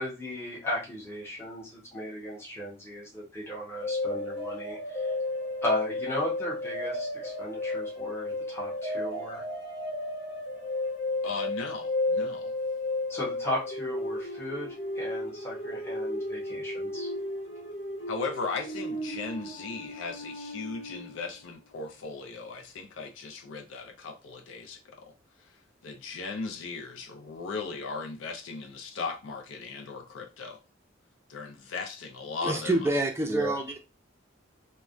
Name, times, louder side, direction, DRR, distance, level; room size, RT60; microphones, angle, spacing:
voice 1, 0.0-5.1 5.6-9.4 13.1-17.1 33.3-33.5, left 1 dB, 15° left, 0.9 m, -36 dB
sound 1, 3.8-21.2, left 2 dB, 60° left, 0.9 m, -33 dB
voice 2, 11.2-12.5 18.1-25.1 25.8-30.6 31.3-32.9, left 4 dB, 85° left, 0.4 m, -37 dB
voice 3, 32.4-33.8, right 2 dB, 15° right, 0.4 m, -27 dB
3.2 x 2.1 x 2.5 m
head